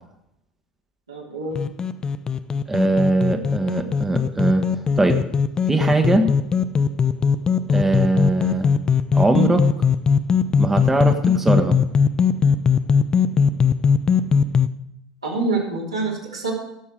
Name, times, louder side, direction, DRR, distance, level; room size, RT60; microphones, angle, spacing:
voice 1, 1.1-1.6 15.2-16.5, right 3 dB, 80° right, -4 dB, 3.1 m, -26 dB
sound 1, 1.6-14.7, left 6 dB, 25° left, 0.5 m, -20 dB
voice 2, 2.7-5.2 5.7-6.3 7.7-8.7 9.1-9.7 10.6-11.8, right 2 dB, 10° right, 5 dB, 1.1 m, -20 dB
16.0 x 6.9 x 5.0 m, 0.81 s
figure-of-eight pair, 70°, 3 cm